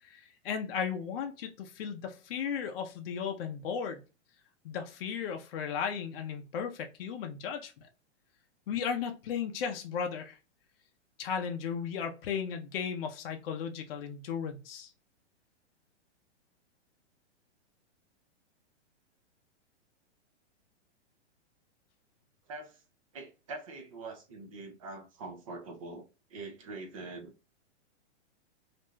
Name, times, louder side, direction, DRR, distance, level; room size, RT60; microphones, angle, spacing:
voice 1, 0.0-4.0 4.6-7.9 8.7-10.4 11.2-14.9, left 7 dB, 55° left, 0.5 m, -35 dB
voice 2, 22.5-22.8 23.1-27.3, right 3 dB, 30° right, 0.4 m, -44 dB
2.5 x 2.1 x 3.0 m
hypercardioid pair, 160°, 35 cm